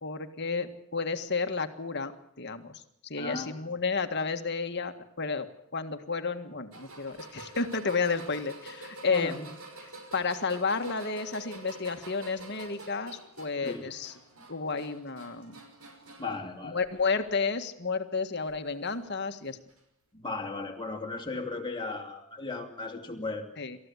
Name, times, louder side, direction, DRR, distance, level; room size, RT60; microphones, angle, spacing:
voice 1, 0.0-2.1 2.4-9.6 9.8-14.1 14.5-15.5 16.7-19.6 23.6-23.8, left 4 dB, 50° left, 8 dB, 1.8 m, -32 dB
voice 2, 3.2-3.6 9.1-9.4 13.6-13.9 16.2-16.8 20.1-23.6, left 3 dB, 20° left, 1 dB, 2.9 m, -36 dB
sound 1, 6.7-16.4 16.8-17.4 18.5-18.6 19.7-19.8, right 2 dB, 80° right, 5.6 m, -47 dB
27.5 x 14.5 x 9.6 m, 0.81 s
head